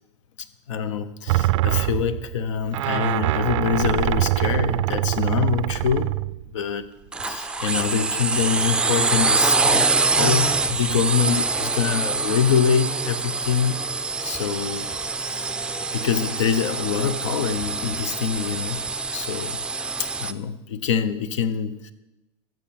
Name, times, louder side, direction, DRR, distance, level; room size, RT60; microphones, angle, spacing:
voice 1, 0.7-6.1 6.5-6.9 7.3-13.8 14.2-14.9 15.2-15.5 15.9-18.8 19.1-19.6 20.0-21.9, left 7 dB, 90° left, 13 dB, 1.0 m, -25 dB
sound 1, 1.3-6.5 7.2-7.3, right 17 dB, 80° right, 0.4 m, -24 dB
sound 2, 7.1-20.3, right 4 dB, 5° right, 0.4 m, -25 dB
14.0 x 7.6 x 5.8 m, 1.0 s
supercardioid pair, 145°, 15 cm